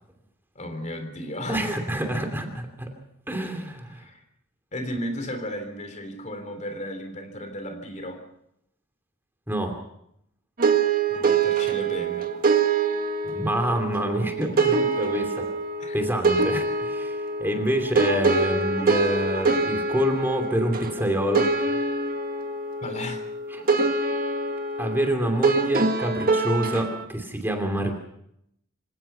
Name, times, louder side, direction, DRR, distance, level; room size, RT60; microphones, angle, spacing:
voice 1, 0.6-1.7 3.9-4.2 4.7-8.2 11.1-12.3 15.8-16.0 22.8-23.2, left 1 dB, 35° left, 6 dB, 3.6 m, -34 dB
voice 2, 1.5-2.9 3.3-4.0 9.5-9.8 13.2-15.5 15.9-21.5 23.5-23.6 24.8-28.0, right 1 dB, 10° right, 4 dB, 2.8 m, -27 dB
sound 1, 10.6-27.0, right 3 dB, 45° right, 1.8 m, -25 dB
26.5 x 17.5 x 5.7 m, 0.76 s
head